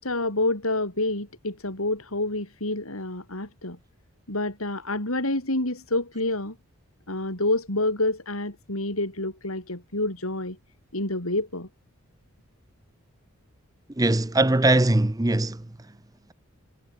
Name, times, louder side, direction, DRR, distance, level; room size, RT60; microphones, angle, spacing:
voice 1, 0.0-3.8 4.3-6.5 7.1-10.6 10.9-11.7, left 2 dB, 80° left, 6.2 m, -28 dB
voice 2, 14.0-15.6, right 2 dB, 15° right, 0.6 m, -21 dB
head